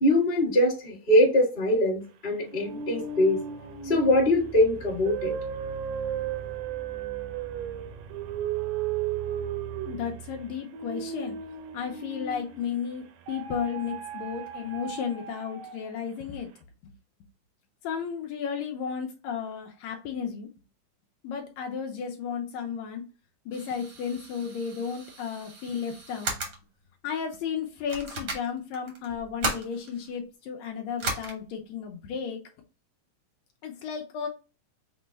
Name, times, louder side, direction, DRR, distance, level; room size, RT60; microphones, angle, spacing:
voice 1, 0.0-3.4 3.8-5.3, left 1 dB, 35° left, 0.7 m, -22 dB
sound 1, 2.5-12.7 13.3-16.0, right 8 dB, 90° right, 2.1 m, -35 dB
voice 2, 9.8-11.4 11.7-16.5 17.8-20.5 21.2-23.0 23.5-26.4 27.0-32.4 33.6-34.3, left 7 dB, 80° left, 1.5 m, -33 dB
sound 2, 23.5-26.6 27.3-27.4 27.9-30.2 31.0-31.3, right 2 dB, 75° right, 0.9 m, -36 dB
5.9 x 2.1 x 3.3 m
omnidirectional pair, 3.6 m